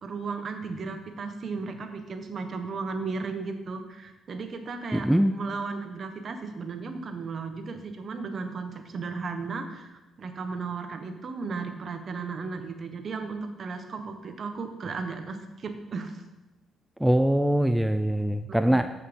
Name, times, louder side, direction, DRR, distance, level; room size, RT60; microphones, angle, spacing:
voice 1, 0.0-16.1 18.5-18.8, right 4 dB, 50° right, 7 dB, 1.2 m, -35 dB
voice 2, 4.9-5.3 17.0-18.9, right 1 dB, 5° right, 9 dB, 0.4 m, -23 dB
8.3 x 7.2 x 5.2 m, 1.1 s
cardioid pair, 90°, 0 cm